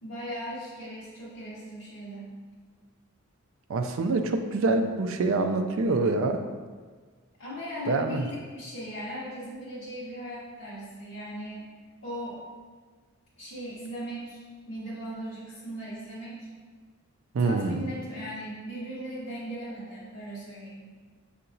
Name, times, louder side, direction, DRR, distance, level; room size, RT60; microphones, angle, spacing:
voice 1, 0.0-2.3 7.4-11.7 12.0-12.4 13.4-16.5 17.4-20.9, equal, 65° left, -12 dB, 1.2 m, -38 dB
voice 2, 3.7-6.4 7.9-8.3 17.3-17.8, right 3 dB, 65° right, 6 dB, 0.3 m, -25 dB
6.5 x 2.8 x 2.6 m, 1.5 s
head